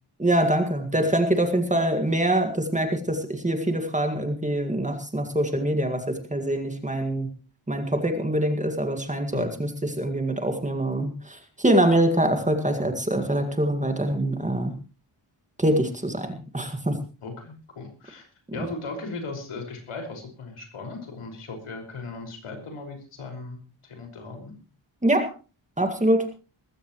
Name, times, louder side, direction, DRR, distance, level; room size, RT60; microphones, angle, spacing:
voice 1, 0.2-7.3 7.7-14.7 15.6-16.3 16.5-17.0 18.6-18.7 25.0-25.3 25.8-26.3, right 1 dB, 15° right, 6 dB, 2.0 m, -24 dB
voice 2, 17.2-24.5, left 3 dB, 80° left, 4 dB, 5.7 m, -37 dB
20.0 x 15.5 x 3.2 m, 0.35 s
wide cardioid pair, 140°, 49 cm